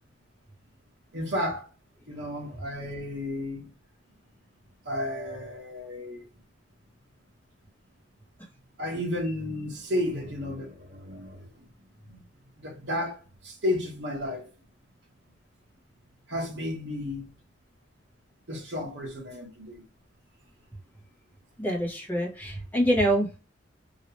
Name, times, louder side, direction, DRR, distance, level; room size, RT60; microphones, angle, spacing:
voice 1, 1.1-1.7 2.1-3.7 4.8-6.2 8.8-11.5 12.0-12.2 12.6-14.5 16.3-17.3 18.5-19.8, left 1 dB, 65° right, 1.2 m, -32 dB
voice 2, 21.6-23.4, equal, 10° left, 1.1 m, -25 dB
3.1 x 2.9 x 2.9 m
head